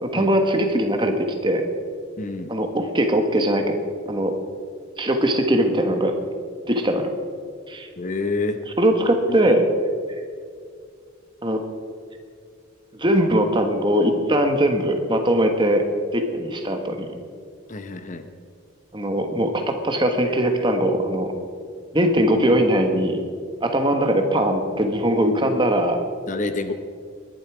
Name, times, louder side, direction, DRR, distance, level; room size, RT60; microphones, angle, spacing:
voice 1, 0.0-1.6 2.5-3.7 4.1-4.3 5.0-6.2 6.7-7.1 7.7-7.9 8.8-9.7 11.4-11.6 12.9-15.8 16.1-17.1 18.9-21.3 21.9-23.2 23.6-26.0, right 1 dB, 25° right, 5 dB, 1.4 m, -20 dB
voice 2, 2.2-2.5 8.0-8.6 9.3-9.5 17.7-18.2 26.3-26.7, left 3 dB, 35° left, 9 dB, 0.8 m, -28 dB
20.5 x 11.0 x 4.9 m, 2.1 s
head